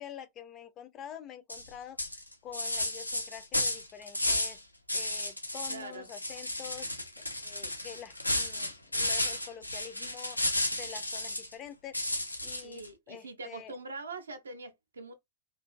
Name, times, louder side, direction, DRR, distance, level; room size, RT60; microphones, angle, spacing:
voice 1, 0.0-2.0 2.4-4.6 4.9-7.1 7.4-10.4 10.7-12.0 12.4-13.8, left 9 dB, 30° left, 0.5 m, -46 dB
sound 1, 1.5-1.7 2.0-4.6 4.9-5.8 6.1-11.5 11.9-12.9, left 1 dB, 85° left, 0.4 m, -33 dB
voice 2, 5.7-6.1 12.6-15.1, right 3 dB, 75° right, 0.5 m, -43 dB
2.4 x 2.3 x 2.3 m
figure-of-eight pair, 90°, 0 cm